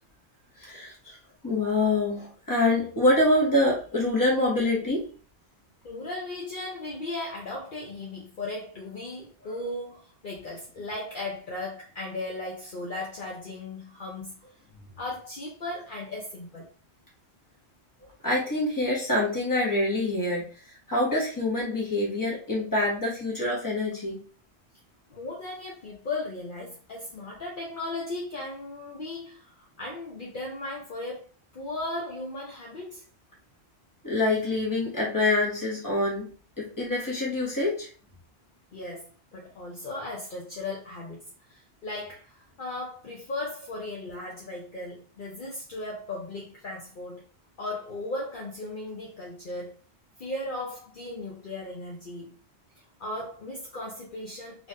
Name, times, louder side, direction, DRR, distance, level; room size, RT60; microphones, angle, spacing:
voice 1, 0.6-1.2 1.4-5.1 18.2-24.2 34.0-36.3 36.6-37.9, left 2 dB, 20° left, 1.4 m, -26 dB
voice 2, 5.8-14.4 15.0-16.7 25.1-31.3 31.5-33.0 38.7-41.2 41.5-47.2 47.6-49.8 50.2-52.3 53.0-54.7, left 2 dB, 50° left, 0.9 m, -36 dB
3.8 x 3.1 x 2.6 m
omnidirectional pair, 1.1 m